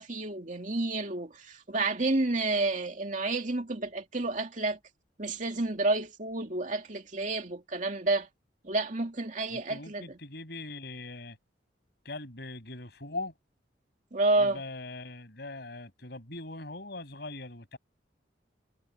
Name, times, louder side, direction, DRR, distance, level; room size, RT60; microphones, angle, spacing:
voice 1, 0.0-4.8 5.2-8.3 8.6-10.2 14.1-14.6, right 2 dB, 45° right, 2.5 m, -30 dB
voice 2, 9.5-11.4 12.0-13.3 14.4-17.8, left 2 dB, 60° left, 7.4 m, -41 dB
head